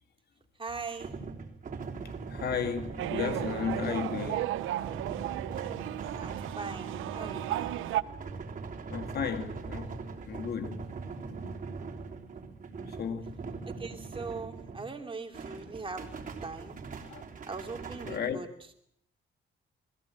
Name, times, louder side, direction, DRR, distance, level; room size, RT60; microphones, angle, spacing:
voice 1, 0.6-1.1 6.2-7.9 13.6-16.1 16.4-16.8 17.5-18.5, right 4 dB, 25° right, 3.0 m, -40 dB
sound 1, 0.7-15.0 15.3-18.2, right 4 dB, 40° right, 3.6 m, -41 dB
voice 2, 2.3-4.5 8.9-10.0 10.3-10.9 13.0-13.3 17.1-17.2 18.1-18.4, left 7 dB, 55° left, 2.1 m, -34 dB
sound 2, 3.0-8.0, right 14 dB, 90° right, 0.8 m, -34 dB
20.5 x 15.5 x 8.9 m
cardioid pair, 90°, 20 cm